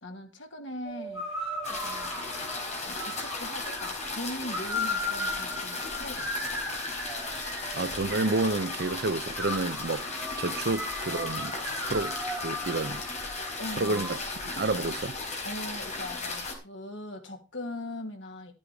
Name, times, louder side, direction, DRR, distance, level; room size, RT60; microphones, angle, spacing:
voice 1, 0.0-1.2 1.7-6.6 13.6-14.1 15.4-18.5, left 1 dB, 80° left, 2.6 m, -40 dB
sound 1, 0.8-14.2, left 1 dB, ahead, 7.8 m, -37 dB
sound 2, 1.6-16.5, left 3 dB, 40° left, 4.4 m, -36 dB
voice 2, 7.7-10.1 10.4-11.6 11.8-13.0 13.8-15.2, right 3 dB, 60° right, 0.8 m, -30 dB
14.0 x 8.2 x 5.0 m
head